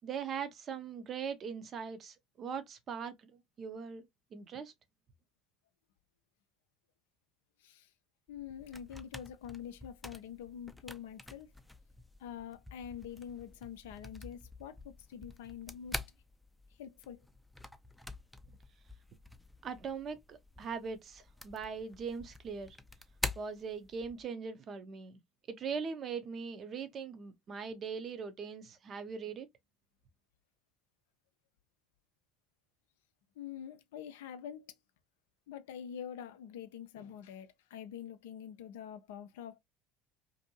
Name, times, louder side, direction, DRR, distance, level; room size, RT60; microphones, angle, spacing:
voice 1, 0.0-3.3 3.6-4.0 4.3-4.7 19.6-22.8 23.4-25.2 25.5-29.5, right 6 dB, 40° right, 0.6 m, -40 dB
voice 2, 8.3-11.5 12.2-16.0 16.8-17.2 33.4-34.6 35.5-39.6, left 9 dB, 70° left, 0.4 m, -46 dB
sound 1, 8.3-24.3, left 2 dB, 5° left, 0.4 m, -47 dB
2.6 x 2.5 x 2.7 m
figure-of-eight pair, 65°, 0 cm